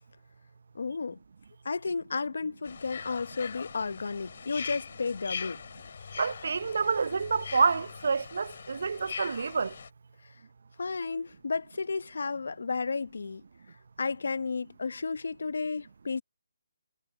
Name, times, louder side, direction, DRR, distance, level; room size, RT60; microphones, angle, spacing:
voice 1, 0.7-1.2 1.6-5.6 10.8-13.4 14.0-16.2, left 4 dB, 75° left, 1.0 m, -32 dB
sound 1, 2.6-9.9, left 6 dB, 60° left, 7.0 m, -41 dB
voice 2, 6.2-9.7, right 5 dB, 65° right, 0.5 m, -28 dB
hypercardioid pair, 160°, 0 cm